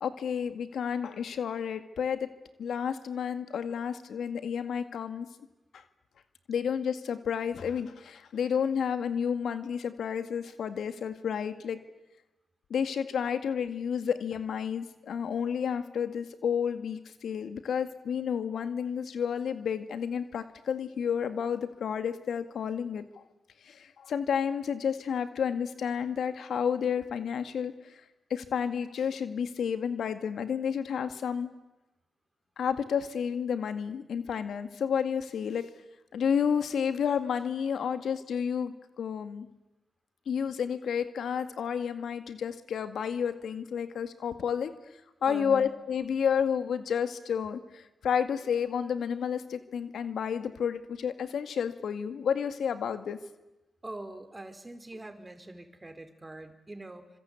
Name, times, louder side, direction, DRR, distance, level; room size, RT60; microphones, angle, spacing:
voice 1, 0.0-2.3 2.6-5.3 5.7-5.8 6.5-11.8 12.7-23.2 23.6-28.0 28.3-31.5 32.6-35.7 36.1-39.5 40.3-44.7 45.2-53.2, left 7 dB, 70° left, 10 dB, 2.0 m, -31 dB
voice 2, 45.3-45.7 53.8-57.1, right 2 dB, 25° right, 8 dB, 4.5 m, -43 dB
27.0 x 26.0 x 8.5 m, 0.99 s
supercardioid pair, 50°, 0 cm